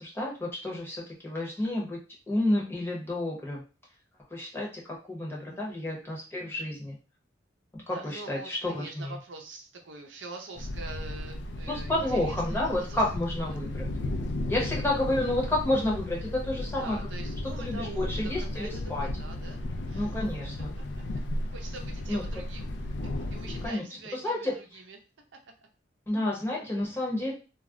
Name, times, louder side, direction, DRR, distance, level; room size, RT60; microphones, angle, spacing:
voice 1, 0.0-2.0 2.3-3.6 4.3-7.0 7.7-9.2 11.7-13.9 14.5-17.0 17.6-19.1 19.9-20.7 22.1-22.2 23.6-23.8 24.1-24.5 26.1-27.3, left 1 dB, 15° left, -3 dB, 0.8 m, -30 dB
voice 2, 5.5-6.0 7.9-13.0 13.5-13.6 16.8-20.1 21.0-21.2 21.5-22.7 23.0-25.0 25.3-25.4 26.5-26.6, right 3 dB, 85° right, 3 dB, 0.6 m, -45 dB
Thunder, 10.5-23.7, left 1 dB, 65° left, 0.4 m, -34 dB
2.3 x 2.1 x 3.6 m, 0.33 s
head